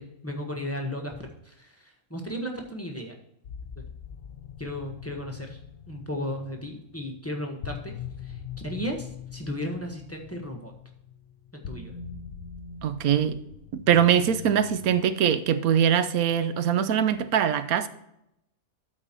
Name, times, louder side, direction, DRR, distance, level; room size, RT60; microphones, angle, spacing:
voice 1, 0.0-3.1 3.8-3.9 4.6-5.6 5.9-10.7 11.5-11.9, equal, 10° left, 1.1 m, -35 dB
sound 1, 3.4-15.0, left 7 dB, 70° left, 1.1 m, -42 dB
voice 2, 12.8-13.4 13.7-17.9, right 9 dB, 85° right, 1.1 m, -22 dB
12.5 x 4.5 x 4.4 m
omnidirectional pair, 1.5 m